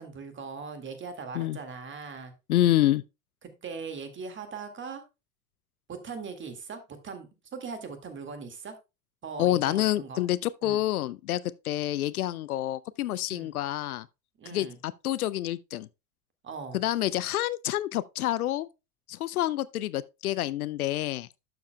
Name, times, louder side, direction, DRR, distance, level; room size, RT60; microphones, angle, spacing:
voice 1, 0.0-2.3 3.4-5.0 5.9-8.7 9.2-10.2 10.6-10.8 13.3-13.5 14.4-14.8 16.4-16.8, right 5 dB, 25° right, 2.0 m, -40 dB
voice 2, 2.5-3.0 9.4-14.1 14.5-15.9 16.7-18.7 19.1-21.3, left 14 dB, 75° left, 0.5 m, -28 dB
11.5 x 7.1 x 2.2 m
figure-of-eight pair, 80°, 44 cm